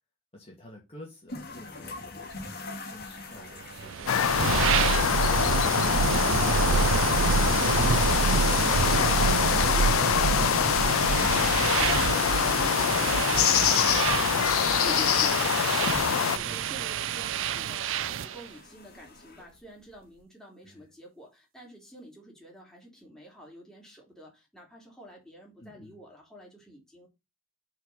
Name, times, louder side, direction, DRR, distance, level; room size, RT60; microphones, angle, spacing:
voice 1, 0.3-6.0 16.1-16.7 20.6-20.8 25.6-26.0, left 1 dB, 30° left, 2.3 m, -50 dB
sound 1, 1.3-20.2, left 3 dB, 50° left, 2.3 m, -46 dB
sound 2, 3.8-18.4, right 6 dB, 65° right, 0.4 m, -27 dB
sound 3, 4.1-16.4, left 9 dB, 90° left, 0.4 m, -25 dB
voice 2, 6.4-14.1 14.7-27.1, right 1 dB, 5° left, 3.2 m, -48 dB
6.6 x 4.5 x 5.6 m
head